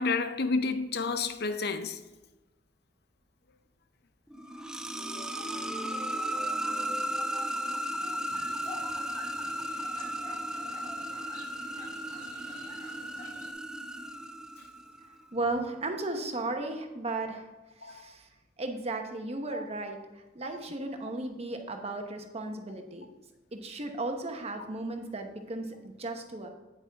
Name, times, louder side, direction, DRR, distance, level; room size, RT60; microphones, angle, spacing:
voice 1, 0.0-2.0 5.1-5.5 17.8-18.1, left 4 dB, 60° left, 0.6 m, -30 dB
sound 1, 4.3-15.1, right 1 dB, 5° right, 0.4 m, -35 dB
sound 2, 8.3-13.5, left 2 dB, 25° left, 1.4 m, -48 dB
voice 2, 15.3-17.5 17.8-18.3 18.6-23.1 23.5-26.5, right 2 dB, 35° right, 1.0 m, -35 dB
8.9 x 8.5 x 3.5 m
head